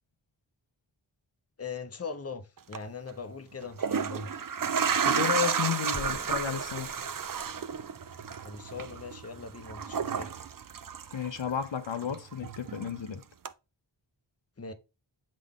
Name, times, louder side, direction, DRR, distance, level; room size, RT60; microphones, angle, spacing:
voice 1, 1.6-4.5 8.4-10.3 14.6-14.7, left 4 dB, 30° left, 0.7 m, -40 dB
sound 1, 2.6-2.8 3.6-11.6 11.9-13.0 13.5-13.6, right 7 dB, 45° right, 0.5 m, -32 dB
voice 2, 5.0-6.9 11.1-13.2, left 8 dB, 70° left, 0.7 m, -32 dB
sound 2, 5.9-8.9, equal, 20° right, 1.1 m, -47 dB
7.5 x 3.9 x 3.6 m
wide cardioid pair, 50°, 46 cm